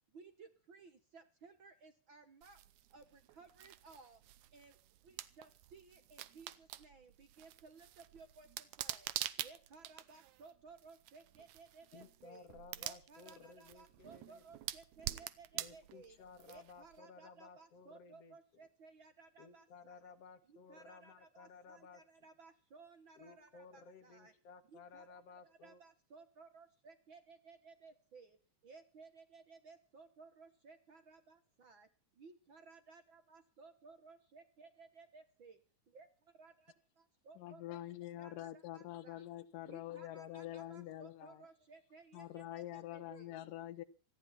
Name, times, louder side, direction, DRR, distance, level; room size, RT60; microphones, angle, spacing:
voice 1, 0.1-2.6 2.9-4.2 4.5-4.8 5.0-9.1 9.4-12.5 12.8-16.2 16.5-20.0 20.5-24.3 24.7-28.4 28.6-31.9 32.2-35.6 35.9-36.1 36.4-37.8 38.2-39.2 39.7-43.3, right 4 dB, 50° right, 1.6 m, -59 dB
sound 1, 2.4-17.0, right 14 dB, 75° right, 2.1 m, -47 dB
voice 2, 11.9-14.4 15.5-18.4 19.4-22.0 23.2-25.8, left 5 dB, 55° left, 2.2 m, -57 dB
voice 3, 37.4-41.5 42.1-43.8, left 13 dB, 85° left, 2.6 m, -46 dB
18.0 x 15.0 x 4.3 m
omnidirectional pair, 3.7 m